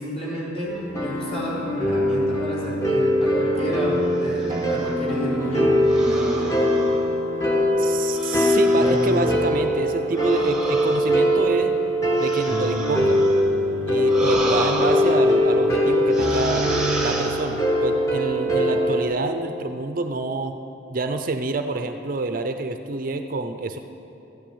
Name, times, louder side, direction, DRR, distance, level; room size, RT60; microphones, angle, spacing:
voice 1, 0.0-6.6, equal, 35° left, -6 dB, 3.9 m, -31 dB
sound 1, 0.7-19.0, equal, 15° left, 1.7 m, -22 dB
sound 2, 4.3-5.0 5.9-7.5 8.1-9.4 10.1-13.5 14.0-15.7 16.1-17.8, right 1 dB, 5° right, 1.3 m, -32 dB
Acoustic guitar, 4.5-9.7, equal, 20° right, 1.1 m, -34 dB
voice 2, 7.8-11.8 12.2-13.2 13.9-16.7 17.0-20.6 20.9-23.8, right 2 dB, 45° right, 7 dB, 0.6 m, -27 dB
13.5 x 8.9 x 8.7 m, 2.9 s
head